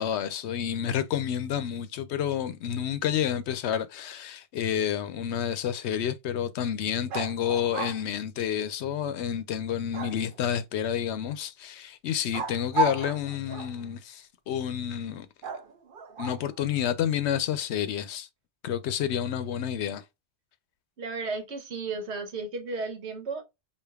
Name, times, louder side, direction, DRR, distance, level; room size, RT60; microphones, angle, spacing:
voice 1, 0.0-15.3 16.2-18.3 18.6-20.0, left 9 dB, 90° left, 0.9 m, -29 dB
sound 1, 7.1-8.0 9.9-10.5 12.3-13.9 15.4-16.6, right 3 dB, 60° right, 0.7 m, -33 dB
voice 2, 21.0-23.4, right 3 dB, 85° right, 1.2 m, -34 dB
5.1 x 2.6 x 2.3 m
omnidirectional pair, 1.1 m